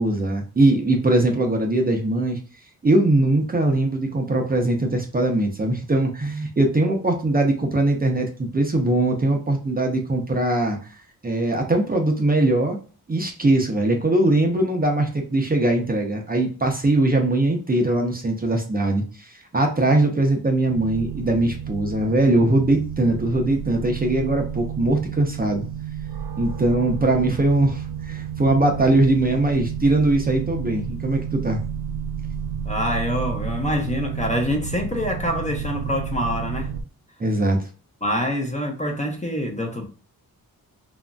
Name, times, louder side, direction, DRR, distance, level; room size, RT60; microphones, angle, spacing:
voice 1, 0.0-2.4 2.8-10.8 11.2-12.8 13.1-25.7 26.4-31.6 37.2-37.6, right 2 dB, 25° right, 0.6 m, -21 dB
sound 1, 20.7-36.8, right 8 dB, 75° right, 0.5 m, -31 dB
voice 2, 32.7-36.7 38.0-39.9, equal, 20° left, 0.6 m, -25 dB
2.9 x 2.5 x 2.2 m
wide cardioid pair, 95°, 37 cm